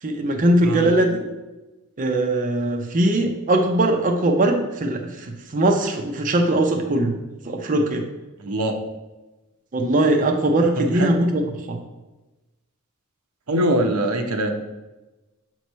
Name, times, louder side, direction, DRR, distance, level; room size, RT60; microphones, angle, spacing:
voice 1, 0.0-1.2 2.0-7.2 7.4-8.0 9.7-11.8, right 1 dB, 40° right, 3 dB, 0.6 m, -20 dB
voice 2, 8.4-8.8 10.8-11.1 13.5-14.5, right 1 dB, 80° right, 4 dB, 0.8 m, -23 dB
7.0 x 3.1 x 5.5 m, 1.1 s
head